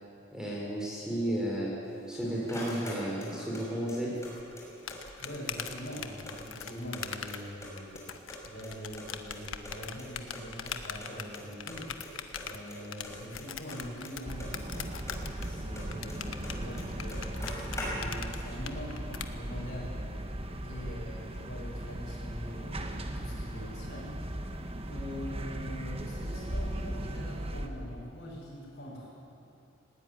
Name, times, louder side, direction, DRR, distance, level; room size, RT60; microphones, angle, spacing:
voice 1, 0.3-1.7 2.1-4.1, right 1 dB, 5° right, -4 dB, 4.6 m, -33 dB
sound 1, 1.9-3.6 3.9-5.0 5.2-5.3 5.6-7.0 7.3-8.0 8.3-9.7 10.0-10.1 10.3-10.4 10.7-10.8 11.0-11.4 11.7-12.1 12.4-14.8 15.1-16.5 16.8-16.9 17.1-18.3, left 1 dB, 15° left, 6.2 m, -43 dB
sound 2, 4.2-19.3, left 7 dB, 85° left, 1.4 m, -42 dB
voice 2, 5.0-11.9 12.4-14.9 15.4-20.0 20.6-24.1 24.9-29.3, equal, 55° left, -6 dB, 7.2 m, -43 dB
sound 3, 14.3-27.7, right 1 dB, 30° right, 1.4 m, -38 dB
19.5 x 19.0 x 9.7 m, 2.6 s
head